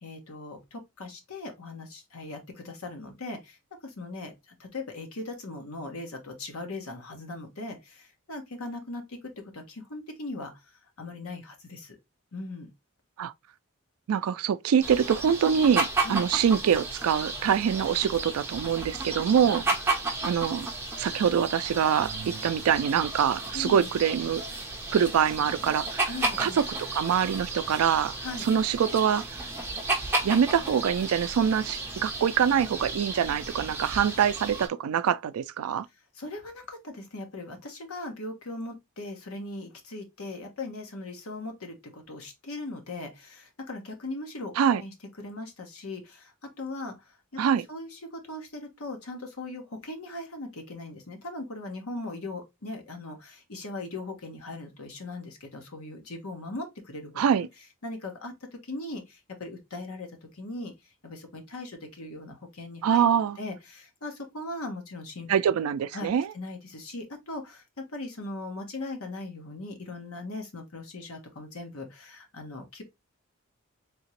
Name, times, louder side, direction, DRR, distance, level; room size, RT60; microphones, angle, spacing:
voice 1, 0.0-3.6 3.8-10.7 11.0-12.0 12.3-12.7 16.0-16.3 19.5-19.6 23.5-23.9 26.1-26.6 28.2-28.4 36.1-47.4 47.7-57.5 57.8-58.3 58.6-60.1 60.3-60.7 61.0-65.3 65.9-72.8, left 2 dB, 80° left, 1.1 m, -39 dB
voice 2, 14.1-19.6 20.2-20.7 21.0-24.4 24.9-26.1 26.4-26.5 26.9-28.1 28.4-29.2 30.2-35.9 44.6-44.8 47.4-47.7 57.2-57.5 62.8-63.4 65.3-66.3, right 8 dB, 85° right, 0.3 m, -24 dB
sound 1, 14.8-34.7, right 3 dB, 10° right, 0.7 m, -33 dB
3.5 x 2.8 x 2.9 m
head